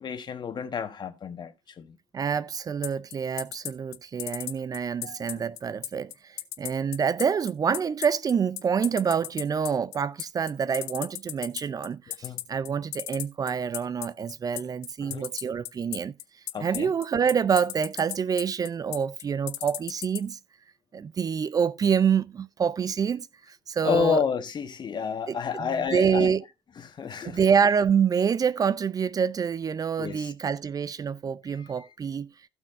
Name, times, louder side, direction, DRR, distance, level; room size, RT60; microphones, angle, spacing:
voice 1, 0.0-2.0 5.0-5.4 12.1-12.4 15.0-15.3 16.5-16.9 23.8-26.3 26.8-27.4 30.0-30.3 31.6-31.7, left 6 dB, 40° left, 1.5 m, -30 dB
voice 2, 2.1-16.1 16.6-20.4 20.9-24.2 25.3-26.4 27.2-32.3, right 7 dB, 30° right, 0.6 m, -27 dB
sound 1, 2.8-20.2, left 17 dB, 70° left, 0.8 m, -34 dB
15.5 x 6.2 x 2.6 m
figure-of-eight pair, 55°, 12 cm